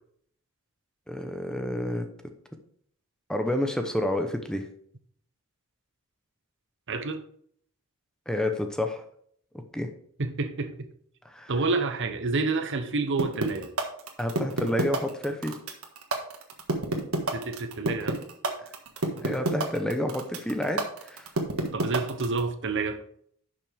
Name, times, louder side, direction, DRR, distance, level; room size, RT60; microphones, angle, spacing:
voice 1, 1.1-2.1 3.3-4.7 8.3-9.0 9.7-9.9 11.3-11.5 14.2-15.6 19.2-21.3, left 1 dB, 5° left, 6 dB, 0.8 m, -29 dB
voice 2, 6.9-7.2 10.2-10.9 11.5-13.7 17.3-18.2 21.7-23.0, right 3 dB, 60° right, 8 dB, 1.0 m, -29 dB
sound 1, 13.2-22.4, right 2 dB, 75° right, 1.5 m, -28 dB
11.0 x 6.1 x 3.5 m, 0.63 s
head